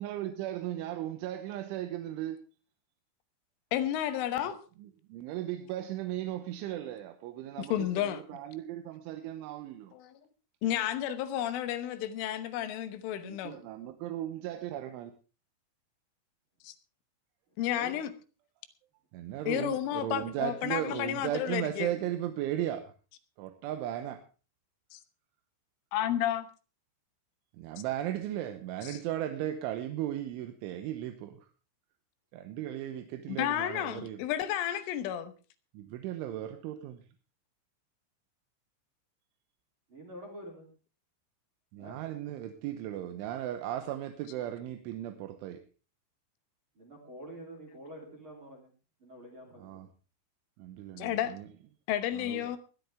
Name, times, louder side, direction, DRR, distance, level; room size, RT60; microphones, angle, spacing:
voice 1, 0.0-2.4 4.4-4.5 4.8-9.9 13.2-15.1 19.1-22.9 23.4-24.2 27.5-31.4 32.3-34.2 35.7-37.0 41.7-45.6 49.6-49.9 50.6-51.5 52.1-52.4, right 12 dB, 75° right, 3.3 m, -36 dB
voice 2, 3.7-4.6 7.6-8.2 9.9-10.2 10.6-13.6 16.6-16.8 17.6-18.1 19.5-21.9 24.9-25.0 25.9-26.5 28.8-29.0 33.3-35.3 51.0-51.4 51.9-52.6, left 11 dB, 80° left, 3.5 m, -32 dB
voice 3, 39.9-40.7 41.8-42.0 46.8-48.7 49.0-49.8, equal, 30° right, 3.4 m, -47 dB
20.5 x 12.0 x 3.5 m
omnidirectional pair, 5.8 m